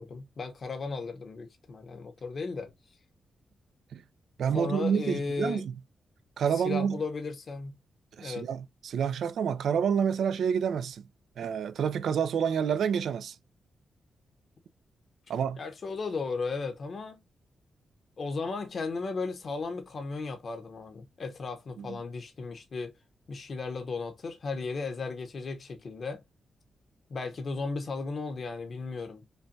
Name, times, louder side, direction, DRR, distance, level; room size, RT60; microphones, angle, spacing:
voice 1, 0.0-2.7 4.5-5.6 6.5-7.7 8.2-8.5 15.6-17.2 18.2-22.9 23.3-26.2 27.1-29.3, left 4 dB, 50° left, 0.9 m, -35 dB
voice 2, 4.4-5.7 6.4-7.0 8.2-11.0 11.4-13.4 15.3-15.6 21.8-22.0, right 7 dB, 80° right, 0.4 m, -28 dB
5.4 x 2.2 x 2.6 m
wide cardioid pair, 120°, 0 cm